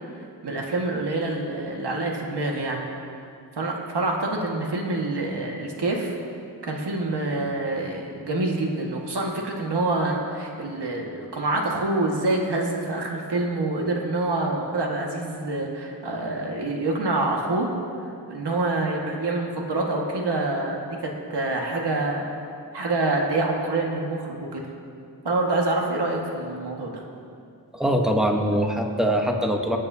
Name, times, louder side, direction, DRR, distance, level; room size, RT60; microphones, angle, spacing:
voice 1, 0.2-2.8 3.6-6.1 6.6-17.7 18.3-22.3 22.7-24.6 25.2-27.0, right 2 dB, 70° right, 0 dB, 1.8 m, -26 dB
voice 2, 27.7-29.8, equal, ahead, 2 dB, 1.1 m, -23 dB
25.5 x 8.7 x 2.8 m, 2.4 s
wide cardioid pair, 100°, 42 cm